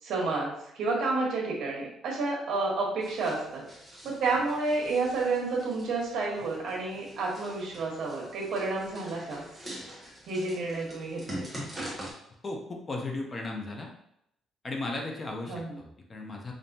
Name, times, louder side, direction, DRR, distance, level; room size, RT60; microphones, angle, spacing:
voice 1, 0.0-3.6 4.0-9.4 10.3-11.4 15.5-15.8, right 3 dB, 65° right, -3 dB, 1.3 m, -30 dB
sound 1, 3.0-12.1, right 1 dB, 5° right, 1.1 m, -44 dB
voice 2, 12.4-13.9 14.6-16.5, left 2 dB, 25° left, 1 dB, 0.5 m, -36 dB
5.2 x 2.6 x 2.8 m, 0.77 s
cardioid pair, 160°, 0 cm